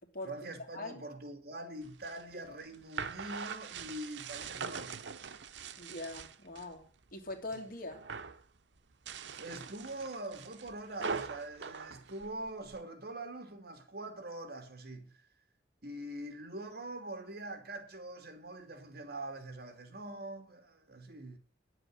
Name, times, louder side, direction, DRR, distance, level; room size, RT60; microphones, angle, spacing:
voice 1, 0.2-5.3 7.6-7.7 9.3-15.2 15.8-21.4, right 1 dB, 60° right, 2.9 m, -44 dB
sound 1, 1.8-6.7 7.1-7.6 7.9-8.4 8.9-12.8, right 5 dB, 85° right, 0.9 m, -42 dB
voice 2, 5.8-6.8 7.1-8.0, left 2 dB, 55° left, 2.7 m, -42 dB
11.0 x 7.9 x 8.0 m
head